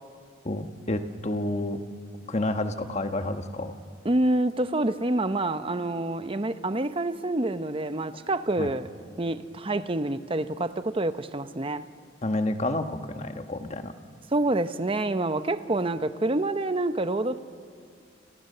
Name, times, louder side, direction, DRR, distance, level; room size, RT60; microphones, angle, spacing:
voice 1, 0.4-1.8 2.3-3.7 8.6-8.7 12.2-13.9, left 1 dB, 35° left, 7 dB, 1.3 m, -29 dB
voice 2, 4.0-8.9 9.1-11.9 14.3-17.4, right 2 dB, 30° right, 11 dB, 0.8 m, -27 dB
29.5 x 26.5 x 6.8 m, 2.2 s
head